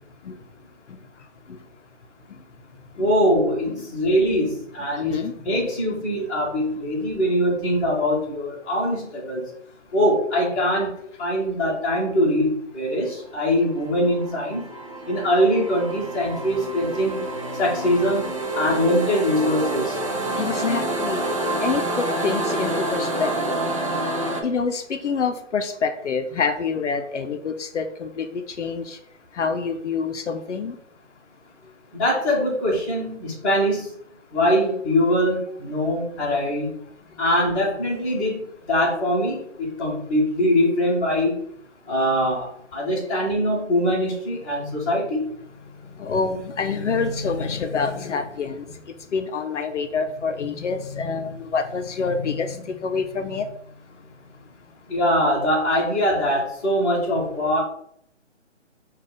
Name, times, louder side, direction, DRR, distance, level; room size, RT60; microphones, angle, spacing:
voice 1, 3.0-9.5 9.9-10.9 11.2-14.6 15.1-17.2 17.5-18.3 18.5-20.0 31.9-33.9 34.3-36.7 37.2-41.4 41.9-45.2 54.9-57.6, equal, 15° left, -6 dB, 1.0 m, -22 dB
voice 2, 5.0-5.4 20.4-21.2 21.6-23.6 24.4-29.0 29.3-30.8 46.0-48.7 49.1-53.5, left 5 dB, 75° left, 7 dB, 0.6 m, -27 dB
sound 1, 13.7-24.4, right 1 dB, 30° right, 0.5 m, -28 dB
4.9 x 2.4 x 3.8 m, 0.68 s
hypercardioid pair, 155°, 37 cm